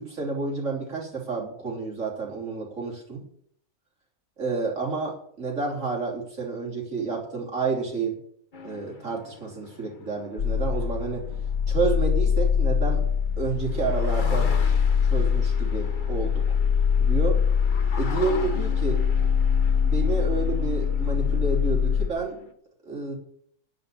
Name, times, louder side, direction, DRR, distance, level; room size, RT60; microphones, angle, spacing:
voice 1, 0.0-3.2 4.4-8.2 8.6-11.2 11.7-13.0 13.3-14.5 15.0-16.4 17.0-17.4 18.0-19.0 19.8-22.5 22.9-23.1, right 4 dB, 55° right, -2 dB, 3.7 m, -30 dB
sound 1, 8.5-12.6 13.2-13.3 13.5-22.5, left 4 dB, 35° left, 1.0 m, -41 dB
sound 2, 10.4-22.1, left 7 dB, 65° left, 1.5 m, -23 dB
10.0 x 7.0 x 8.5 m, 0.66 s
omnidirectional pair, 1.6 m